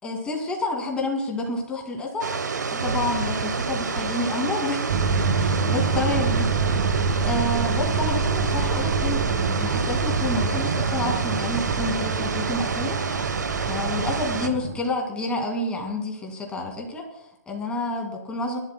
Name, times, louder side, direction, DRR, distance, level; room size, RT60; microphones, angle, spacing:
voice 1, 0.0-2.4 2.7-5.0 5.3-6.5 7.2-18.6, left 2 dB, 10° left, 1 dB, 2.3 m, -29 dB
sound 1, 2.2-14.5, right 5 dB, 90° right, 1.1 m, -28 dB
sound 2, 4.9-14.8, right 5 dB, 55° right, 1.6 m, -26 dB
22.0 x 12.0 x 2.3 m, 0.84 s
hypercardioid pair, 145°, 9 cm